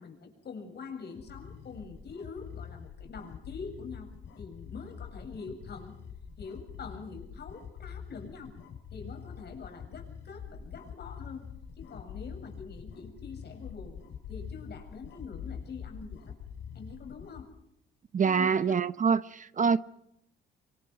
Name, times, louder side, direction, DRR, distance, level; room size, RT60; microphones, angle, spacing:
voice 1, 0.0-4.1 4.4-5.9 6.4-8.5 8.9-11.4 11.8-14.0 14.3-16.4 16.7-17.5 18.2-18.8, left 5 dB, 55° left, 7.9 m, -44 dB
sound 1, 1.0-17.4, left 7 dB, 75° left, 5.3 m, -45 dB
voice 2, 18.1-19.8, right 6 dB, 40° right, 0.9 m, -25 dB
26.5 x 25.5 x 5.0 m
cardioid pair, 90°, 20 cm